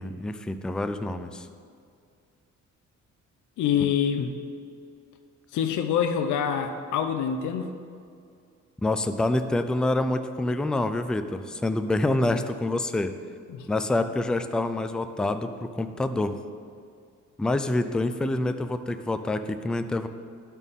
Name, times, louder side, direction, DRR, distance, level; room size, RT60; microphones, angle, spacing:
voice 1, 0.0-1.5 8.8-13.1 13.7-16.4 17.4-20.1, left 2 dB, 5° left, 9 dB, 0.3 m, -27 dB
voice 2, 3.6-4.3 5.5-7.7 13.5-13.7, left 8 dB, 75° left, 7 dB, 0.6 m, -26 dB
12.5 x 4.2 x 3.6 m, 2.3 s
cardioid pair, 90°, 30 cm